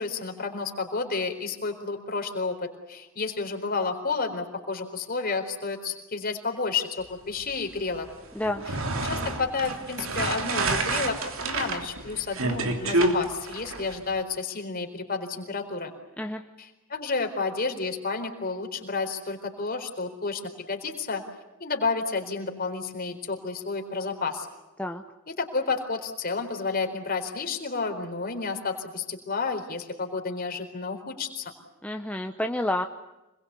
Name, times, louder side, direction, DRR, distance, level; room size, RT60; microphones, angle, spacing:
voice 1, 0.0-8.1 9.0-15.9 16.6-20.4 20.7-21.2 21.6-24.5 25.3-31.5, left 4 dB, 45° left, 5 dB, 4.2 m, -31 dB
sound 1, 8.4-14.0, right 2 dB, 70° right, 3.2 m, -28 dB
voice 2, 31.8-32.9, left 1 dB, 5° left, 5 dB, 0.9 m, -29 dB
27.0 x 21.5 x 8.4 m, 1.0 s
head